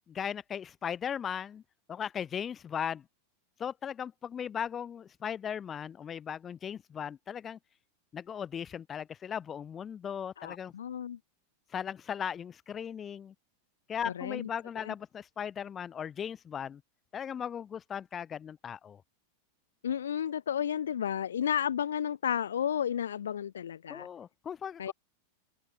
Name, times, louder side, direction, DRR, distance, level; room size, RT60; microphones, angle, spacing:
voice 1, 0.1-1.6 1.9-3.1 3.6-7.6 8.1-10.7 11.7-13.3 13.9-16.8 17.1-19.0 23.9-24.9, left 8 dB, 25° left, 2.5 m, -37 dB
voice 2, 10.4-11.2 14.0-14.5 14.8-14.9 19.8-24.1 24.8-24.9, left 9 dB, 65° left, 0.8 m, -32 dB
open air
figure-of-eight pair, 90°, 0 cm